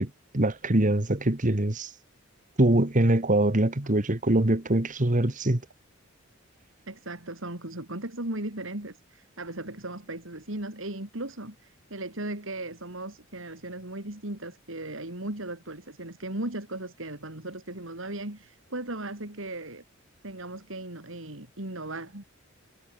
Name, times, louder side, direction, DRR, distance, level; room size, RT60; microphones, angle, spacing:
voice 1, 0.0-1.9 2.6-5.6, right 1 dB, 40° right, 1.8 m, -23 dB
voice 2, 6.9-19.8 20.2-22.2, right 1 dB, 65° right, 4.1 m, -37 dB
head